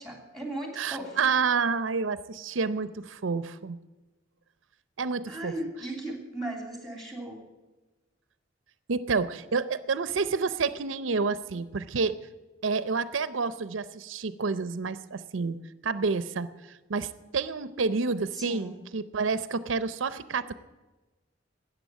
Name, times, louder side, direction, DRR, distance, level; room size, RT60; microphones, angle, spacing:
voice 1, 0.0-1.2 5.3-7.4 18.3-18.8, right 1 dB, ahead, 3 dB, 3.0 m, -37 dB
voice 2, 0.8-3.8 5.0-5.5 8.9-12.2 12.6-15.6 15.8-20.5, right 4 dB, 90° right, 15 dB, 0.6 m, -29 dB
13.5 x 9.1 x 9.0 m, 1.2 s
head